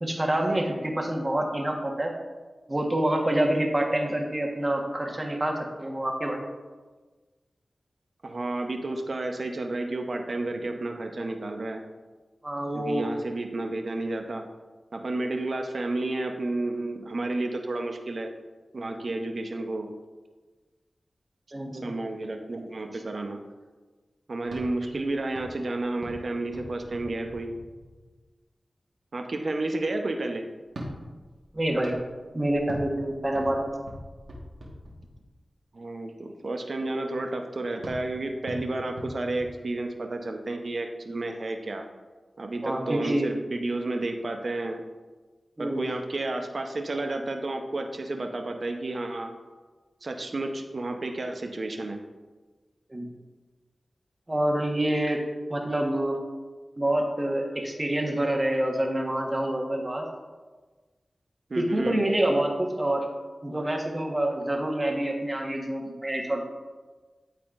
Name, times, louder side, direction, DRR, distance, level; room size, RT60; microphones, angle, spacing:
voice 1, 0.0-2.1 2.7-6.4 12.4-13.0 21.5-21.9 31.5-32.0 32.3-33.8 42.6-43.3 45.6-45.9 52.9-53.1 54.3-55.2 55.5-56.2 56.8-60.0 61.6-63.1 63.4-66.4, right 1 dB, 30° right, 1 dB, 1.3 m, -27 dB
voice 2, 8.2-11.8 12.7-14.5 14.9-18.3 18.7-19.9 21.8-23.4 24.3-27.5 29.1-30.4 35.7-41.9 42.4-44.8 45.6-49.3 50.0-52.0 61.5-62.0, right 2 dB, 60° right, 4 dB, 0.8 m, -31 dB
sound 1, 24.4-28.3 30.6-35.5 37.8-40.2, equal, 85° right, 1.5 m, -43 dB
12.0 x 4.2 x 2.5 m, 1.3 s
cardioid pair, 50°, 0 cm